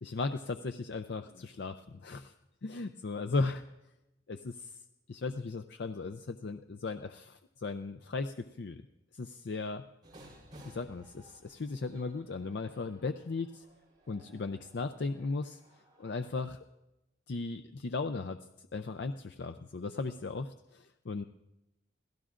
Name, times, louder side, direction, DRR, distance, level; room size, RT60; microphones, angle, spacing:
voice 1, 0.0-2.3 2.6-3.6 4.3-4.8 5.1-8.8 9.1-9.8 10.6-13.6 14.1-15.6 16.0-16.6 17.3-21.2, left 3 dB, 60° left, 8 dB, 0.5 m, -37 dB
sound 1, 10.0-16.4, right 1 dB, 25° right, 7.3 m, -58 dB
29.0 x 17.5 x 2.5 m, 0.94 s
head